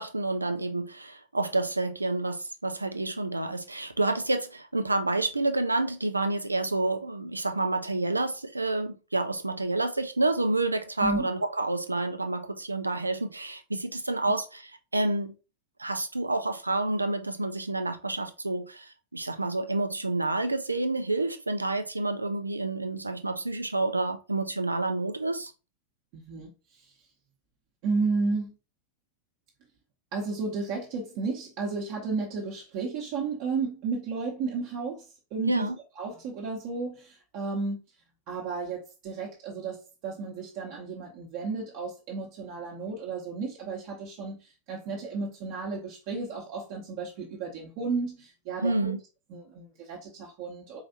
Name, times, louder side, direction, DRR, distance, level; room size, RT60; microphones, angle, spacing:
voice 1, 0.0-15.3 15.8-25.5 35.5-35.8 48.6-49.0, right 2 dB, 80° right, 0.4 m, -29 dB
voice 2, 26.1-26.9 27.8-28.5 30.1-35.0 35.3-35.7 36.0-37.8 38.3-48.9 49.3-50.8, right 4 dB, 45° right, 1.0 m, -33 dB
4.7 x 3.3 x 2.7 m
figure-of-eight pair, 90°, 0 cm